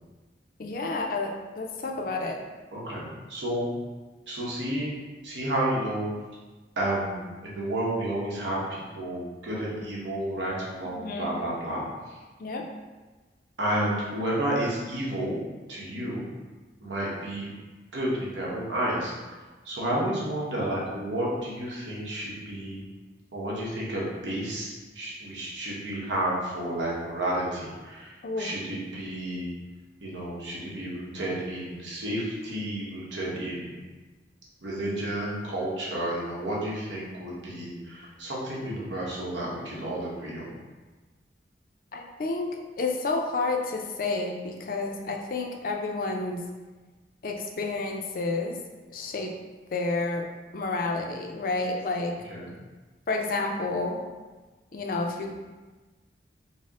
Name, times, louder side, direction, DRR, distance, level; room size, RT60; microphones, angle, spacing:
voice 1, 0.6-2.4 10.9-11.3 12.4-12.6 28.2-28.5 41.9-42.5 42.8-46.4 47.2-48.6 48.9-49.3 49.7-50.3 50.5-52.2 53.1-54.0 54.7-55.4, left 3 dB, 50° left, 2 dB, 0.4 m, -30 dB
voice 2, 2.7-3.7 4.3-4.9 5.2-6.1 6.8-11.8 13.6-15.4 15.7-16.2 16.8-17.5 17.9-19.1 19.6-22.8 23.3-29.5 30.0-33.8 34.6-40.5 52.3-52.5, right 1 dB, 90° right, -5 dB, 1.0 m, -31 dB
4.2 x 2.0 x 3.6 m, 1.3 s
head